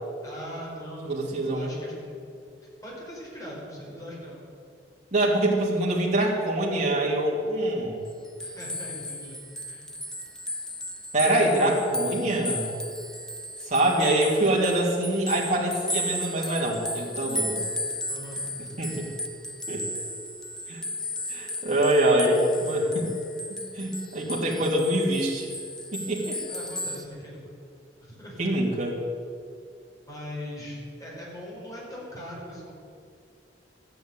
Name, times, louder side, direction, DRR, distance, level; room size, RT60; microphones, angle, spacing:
voice 1, 0.2-2.3 2.8-4.4 8.4-9.4 9.7-9.9 18.1-19.1 26.5-27.4 28.0-28.5 30.1-32.7, equal, 20° left, -4 dB, 4.8 m, -40 dB
voice 2, 1.1-1.7 5.1-8.0 11.1-12.7 13.6-17.6 18.8-19.1 19.7-19.9 20.7-20.8 21.3-23.1 23.7-25.5 25.9-26.4 28.4-28.9, right 1 dB, 40° right, -4 dB, 2.9 m, -24 dB
sound 1, 8.1-27.1, left 1 dB, 5° left, 0.9 m, -35 dB
13.5 x 9.4 x 9.1 m, 2.4 s
head